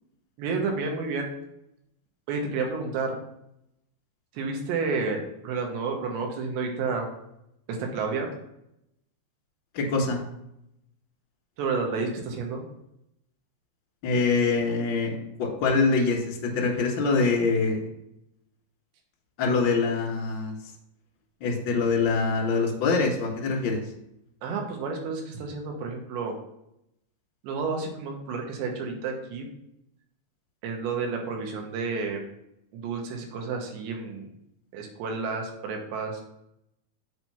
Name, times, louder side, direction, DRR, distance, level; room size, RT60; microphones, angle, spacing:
voice 1, 0.4-1.3 2.3-3.2 4.3-7.1 7.7-8.3 11.6-12.6 24.4-26.3 27.4-29.5 30.6-32.2 32.7-34.3 34.7-36.2, right 4 dB, 85° right, 2 dB, 3.4 m, -30 dB
voice 2, 9.7-10.2 14.0-17.8 19.4-20.5 21.4-23.8, left 4 dB, 60° left, -1 dB, 1.2 m, -24 dB
7.0 x 4.6 x 5.6 m, 0.81 s
omnidirectional pair, 4.8 m